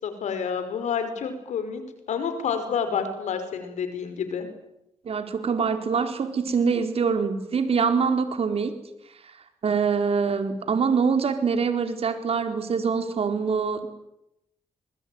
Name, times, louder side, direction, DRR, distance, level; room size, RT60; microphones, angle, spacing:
voice 1, 0.0-1.8 2.1-4.5, left 6 dB, 80° left, 9 dB, 5.7 m, -29 dB
voice 2, 5.0-8.7 9.6-13.9, right 5 dB, 55° right, 7 dB, 4.3 m, -24 dB
26.5 x 21.5 x 9.7 m, 0.83 s
cardioid pair, 80°, 12 cm